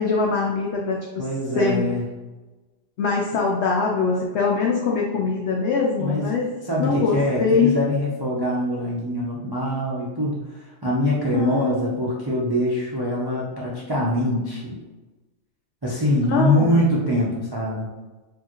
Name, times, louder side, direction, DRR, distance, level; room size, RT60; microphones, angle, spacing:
voice 1, 0.0-1.3 1.6-1.8 3.0-6.5 6.8-7.7 11.3-12.0 16.3-16.8, left 4 dB, 65° left, -1 dB, 0.7 m, -23 dB
voice 2, 1.2-2.0 6.0-6.3 6.6-14.8 15.8-17.9, left 1 dB, 40° right, -5 dB, 0.3 m, -24 dB
4.8 x 2.8 x 3.0 m, 1.2 s
omnidirectional pair, 1.6 m